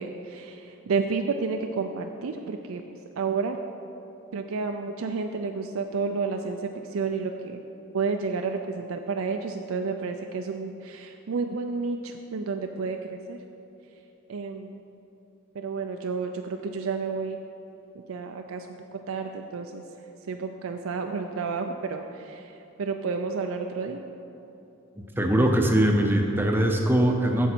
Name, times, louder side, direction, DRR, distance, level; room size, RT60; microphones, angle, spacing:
voice 1, 0.0-3.6 4.3-7.6 7.9-13.4 14.3-14.8 15.5-17.4 18.1-18.8 19.1-19.8 20.3-22.5 22.8-24.0, right 4 dB, 75° right, 5 dB, 0.4 m, -31 dB
voice 2, 25.0-27.5, right 1 dB, 10° right, 2 dB, 0.6 m, -22 dB
9.0 x 7.3 x 4.4 m, 3.0 s
head